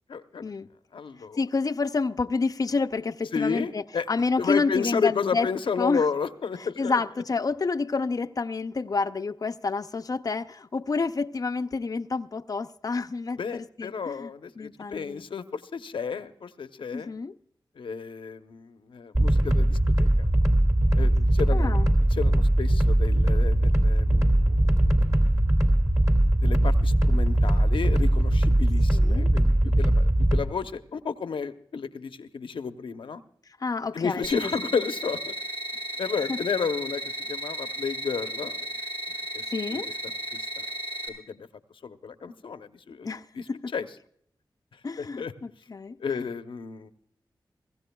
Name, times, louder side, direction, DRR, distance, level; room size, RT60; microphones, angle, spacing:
voice 1, 0.1-0.4 0.9-1.4 3.3-4.1 4.4-7.0 13.4-17.1 17.8-20.3 21.0-21.7 22.1-25.0 26.4-33.2 33.9-35.3 36.0-38.7 39.3-39.4 39.7-40.6 41.1-41.5 41.8-43.1 43.3-43.9 45.0-45.3 46.0-46.9, left 5 dB, 85° left, 0.8 m, -32 dB
voice 2, 1.4-3.8 4.1-5.5 5.8-6.1 6.6-14.3 14.6-15.2 16.9-17.3 21.5-21.9 28.9-29.3 33.6-34.3 36.3-36.4 39.5-39.9 43.0-43.7 44.8-46.2, left 4 dB, 45° left, 0.5 m, -29 dB
sound 1, 19.1-30.4, right 1 dB, 35° right, 2.4 m, -21 dB
sound 2, 34.2-41.1, equal, 85° right, 4.8 m, -34 dB
23.0 x 15.0 x 2.3 m
cardioid pair, 55°, 8 cm